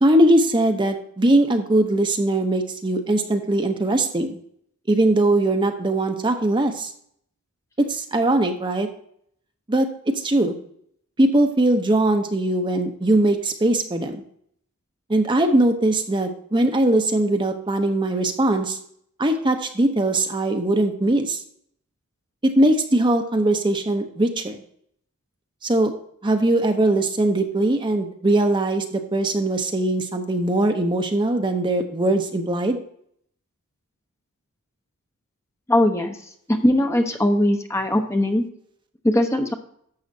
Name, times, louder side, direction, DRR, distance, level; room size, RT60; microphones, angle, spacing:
voice 1, 0.0-4.4 4.9-6.9 7.8-8.9 9.7-9.9 10.1-10.6 11.2-14.2 15.1-18.8 19.2-21.4 22.4-24.6 25.6-25.9 26.2-32.8, right 1 dB, 20° right, 5 dB, 0.7 m, -20 dB
voice 2, 35.7-36.2 36.5-38.4 39.0-39.5, left 1 dB, 15° left, 5 dB, 0.8 m, -20 dB
11.5 x 7.1 x 2.7 m, 0.67 s
head